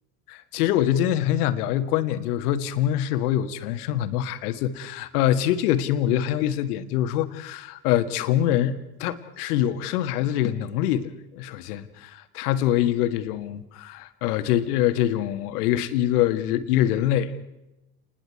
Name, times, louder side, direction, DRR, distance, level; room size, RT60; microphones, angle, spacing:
voice 1, 0.3-17.4, left 11 dB, 65° left, 11 dB, 1.8 m, -24 dB
29.5 x 20.5 x 4.7 m, 0.96 s
figure-of-eight pair, 65°, 49 cm